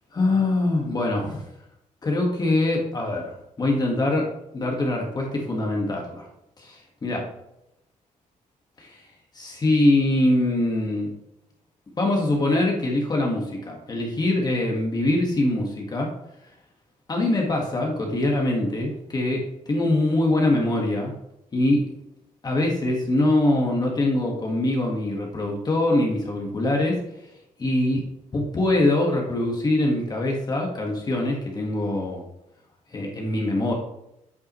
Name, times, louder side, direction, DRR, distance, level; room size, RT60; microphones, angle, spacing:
voice 1, 0.1-1.4 2.0-6.3 6.6-7.2 8.8-9.0 9.3-11.1 12.0-16.1 17.1-19.4 19.7-21.1 21.5-21.8 22.4-27.0 27.6-28.0 28.3-32.2 32.9-33.7, left 2 dB, 30° left, 0 dB, 1.6 m, -23 dB
8.4 x 8.1 x 3.1 m, 0.83 s
cardioid pair, 130°, 14 cm